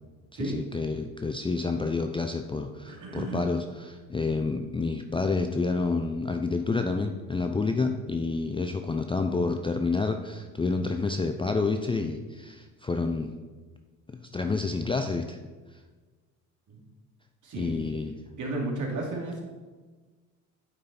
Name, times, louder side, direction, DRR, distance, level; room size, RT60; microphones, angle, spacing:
voice 1, 0.3-13.3 14.1-15.4 17.6-18.1, left 3 dB, 15° left, 5 dB, 0.5 m, -29 dB
voice 2, 2.9-3.5 16.7-16.8 17.4-17.7 18.4-19.4, right 2 dB, 45° right, -1 dB, 2.6 m, -33 dB
9.5 x 5.4 x 4.2 m, 1.3 s
hypercardioid pair, 65°, 41 cm